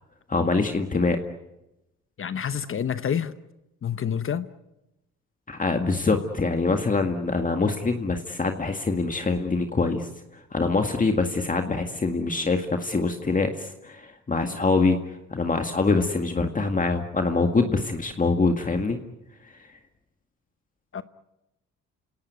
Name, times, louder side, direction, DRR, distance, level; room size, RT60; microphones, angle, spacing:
voice 1, 0.3-1.2 5.5-15.0 15.3-19.0 19.5-19.6, left 3 dB, 25° left, 5 dB, 2.0 m, -24 dB
voice 2, 2.2-3.3 3.8-4.5 20.9-21.0, left 8 dB, 45° left, 12 dB, 1.0 m, -28 dB
28.0 x 18.0 x 9.5 m, 0.94 s
cardioid pair, 90°, 30 cm